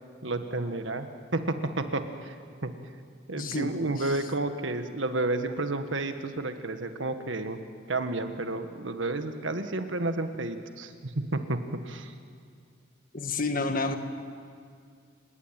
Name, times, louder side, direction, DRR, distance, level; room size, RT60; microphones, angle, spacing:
voice 1, 0.2-1.1 1.3-2.4 2.6-2.7 3.3-7.6 7.9-11.6 11.8-12.1, right 2 dB, 80° right, 8 dB, 1.6 m, -31 dB
voice 2, 3.4-3.8 13.1-13.9, left 3 dB, 45° left, 7 dB, 1.6 m, -29 dB
29.5 x 18.0 x 9.0 m, 2.2 s
head